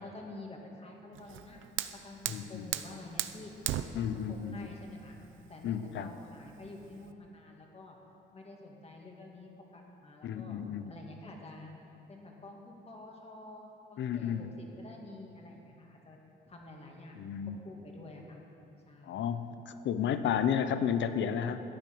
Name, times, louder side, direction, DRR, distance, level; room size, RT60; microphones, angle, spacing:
voice 1, 0.0-1.6 2.0-3.5 3.8-5.2 5.5-8.0 8.3-10.6 10.9-11.7 12.1-16.2 16.5-18.4 18.9-19.3, left 2 dB, 30° left, 0 dB, 2.2 m, -49 dB
Fire, 1.2-7.1, right 12 dB, 80° right, 0.6 m, -39 dB
voice 2, 2.3-2.7 3.9-4.7 5.6-6.1 10.2-10.9 14.0-14.4 17.2-17.6 19.1-21.6, left 8 dB, 70° left, 11 dB, 0.7 m, -32 dB
13.5 x 9.1 x 6.2 m, 2.9 s
cardioid pair, 90°, 20 cm